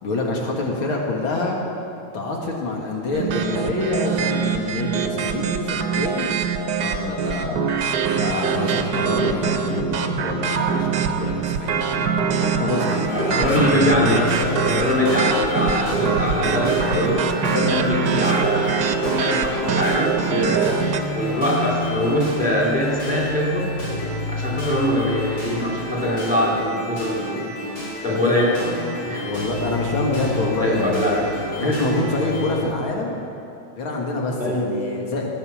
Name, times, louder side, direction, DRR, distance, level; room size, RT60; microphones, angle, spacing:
voice 1, 0.0-1.6 2.1-6.3 6.8-13.7 28.1-28.4 29.2-31.1 31.6-33.2 33.8-35.3, left 2 dB, 70° left, -1 dB, 2.5 m, -26 dB
sound 1, 3.1-21.0, right 6 dB, 60° right, 1.2 m, -23 dB
sound 2, 12.8-32.5, left 1 dB, 45° left, 4.8 m, -29 dB
voice 2, 13.1-20.8 21.1-23.7 24.3-27.5 28.0-28.7 29.0-29.2 30.6-31.2 31.6-31.8 34.4-34.7, left 1 dB, 5° right, -5 dB, 3.1 m, -23 dB
18.0 x 9.6 x 7.1 m, 2.6 s
omnidirectional pair, 2.3 m